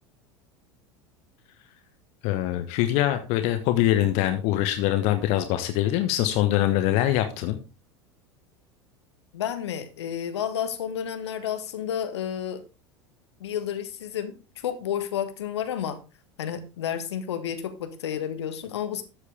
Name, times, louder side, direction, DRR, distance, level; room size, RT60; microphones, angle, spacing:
voice 1, 2.2-7.6, left 13 dB, 50° left, 1.2 m, -23 dB
voice 2, 9.3-12.6 13.4-14.3 14.6-16.0 16.4-19.0, left 9 dB, 70° left, 1.5 m, -31 dB
12.5 x 8.1 x 3.6 m
figure-of-eight pair, 75°, 15 cm